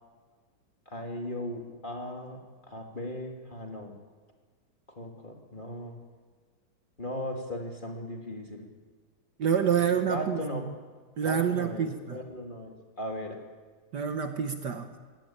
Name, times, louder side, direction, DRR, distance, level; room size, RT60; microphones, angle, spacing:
voice 1, 0.9-3.9 5.0-6.0 7.0-8.7 9.9-10.6 11.2-13.4, left 1 dB, 25° left, 1 dB, 2.8 m, -37 dB
voice 2, 9.4-10.4 11.2-12.2 13.9-14.9, right 8 dB, 60° right, 7 dB, 1.6 m, -27 dB
21.0 x 17.0 x 8.9 m, 1.5 s
omnidirectional pair, 2.3 m